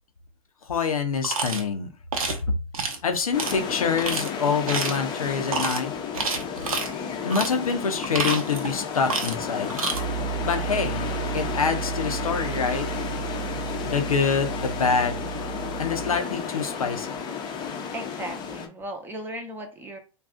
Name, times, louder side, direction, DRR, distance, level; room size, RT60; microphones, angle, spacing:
voice 1, 0.7-1.9 3.0-5.9 7.2-9.8 10.4-12.9 13.9-15.2 15.8-17.2, left 5 dB, 85° left, 0.6 m, -26 dB
sound 1, 1.2-1.6 2.1-2.4 2.7-3.0 3.4-3.5 4.0-4.3 4.7-5.0 5.5-5.8 6.1-6.9 7.3-7.5 8.0-8.7 9.1-9.4 9.7-10.0, right 3 dB, 85° right, 0.7 m, -28 dB
sound 2, 3.3-18.7, left 6 dB, 25° left, 0.6 m, -32 dB
Piano, 9.9-16.2, right 11 dB, 65° right, 0.5 m, -33 dB
voice 2, 17.9-20.0, right 1 dB, 10° right, 0.7 m, -36 dB
2.6 x 2.3 x 3.5 m
hypercardioid pair, 105°, 18 cm